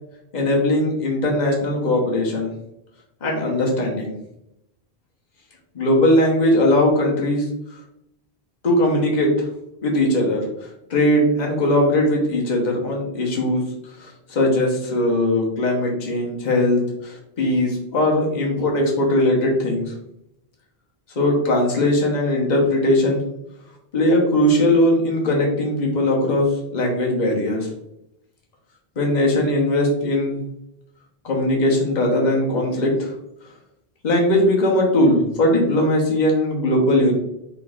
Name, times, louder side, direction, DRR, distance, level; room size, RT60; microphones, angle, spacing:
voice 1, 0.3-2.5 3.2-4.1 5.7-7.4 8.6-9.5 9.8-13.6 14.0-19.8 21.2-23.2 23.9-27.7 29.0-30.4 31.2-33.1 34.0-37.1, left 1 dB, 45° left, -1 dB, 1.0 m, -19 dB
3.8 x 3.6 x 2.4 m, 0.83 s
omnidirectional pair, 1.1 m